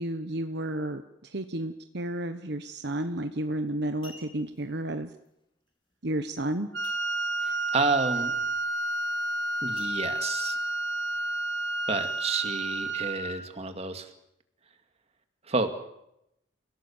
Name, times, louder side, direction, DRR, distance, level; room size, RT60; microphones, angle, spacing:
voice 1, 0.0-5.1 6.0-6.7, right 1 dB, 55° right, 8 dB, 1.1 m, -32 dB
sound 1, 3.2-3.4 3.8-4.6 6.8-7.5 7.8-7.9 8.4-8.7 9.8-10.5 11.1-11.2, left 3 dB, 25° left, 3.4 m, -50 dB
Wind instrument woodwind instrument, 6.7-13.4, right 2 dB, 75° right, 2.8 m, -30 dB
voice 2, 7.4-8.3 9.6-10.6 11.9-14.1 15.5-15.7, right 3 dB, 30° right, 7 dB, 2.2 m, -30 dB
29.0 x 18.0 x 7.3 m, 0.81 s
head